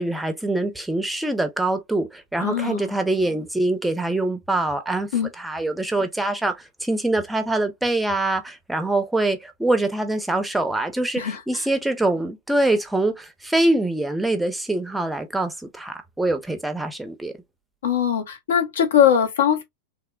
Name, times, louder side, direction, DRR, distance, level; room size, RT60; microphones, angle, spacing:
voice 1, 0.0-5.1 5.4-11.2 11.5-17.3, right 2 dB, 5° right, 0.5 m, -24 dB
voice 2, 2.4-3.0 5.1-5.3 11.2-11.6 17.8-19.6, left 8 dB, 65° left, 0.7 m, -21 dB
3.1 x 2.1 x 2.2 m
figure-of-eight pair, 90°, 0 cm